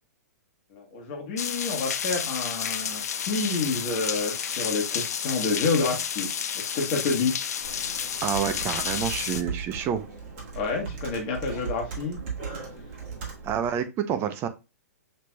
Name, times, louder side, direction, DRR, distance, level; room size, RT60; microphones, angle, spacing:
voice 1, 0.7-7.4 10.5-12.2 12.7-12.8, left 4 dB, 40° left, 1 dB, 1.2 m, -29 dB
sound 1, 1.4-9.4, left 8 dB, 70° left, 0.5 m, -31 dB
Computer keyboard, 7.6-13.8, right 5 dB, 45° right, 1.7 m, -38 dB
voice 2, 8.2-10.1 13.4-14.5, right 8 dB, 25° right, 10 dB, 0.5 m, -28 dB
5.7 x 3.3 x 2.2 m, 0.27 s
hypercardioid pair, 120°, 9 cm